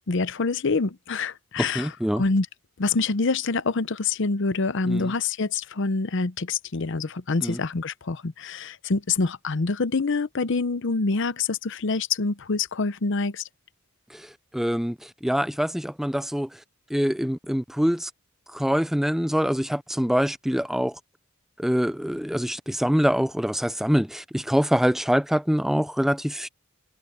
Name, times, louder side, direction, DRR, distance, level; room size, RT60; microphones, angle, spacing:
voice 1, 0.1-2.5 2.8-13.4, left 4 dB, 65° left, 0.7 m, -26 dB
voice 2, 1.6-2.2 4.8-5.1 7.4-7.6 14.1-14.3 14.5-16.5 16.9-18.1 18.5-21.0 21.6-26.5, equal, ahead, 0.5 m, -24 dB
head